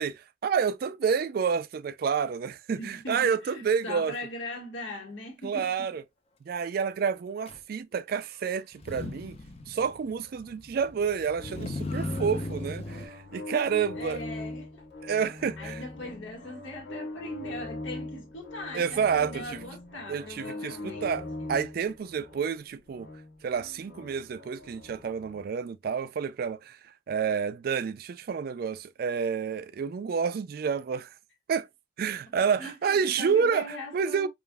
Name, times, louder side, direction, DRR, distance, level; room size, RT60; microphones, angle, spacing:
voice 1, 0.0-4.1 5.4-6.0 6.4-9.4 9.7-14.2 15.0-15.8 18.7-19.6 20.1-21.2 21.5-23.1 23.4-26.8 27.1-31.1 31.5-31.7 32.0-33.7 33.9-34.3, right 6 dB, 50° right, 0.3 m, -29 dB
voice 2, 2.8-6.0 13.9-14.9 15.6-21.6 32.6-34.3, left 1 dB, 80° left, 1.6 m, -40 dB
Motor vehicle (road), 7.5-7.6 8.7-13.1, left 2 dB, 30° left, 0.6 m, -37 dB
sound 1, 11.4-25.4, left 2 dB, 60° left, 1.5 m, -41 dB
5.2 x 2.5 x 2.2 m
head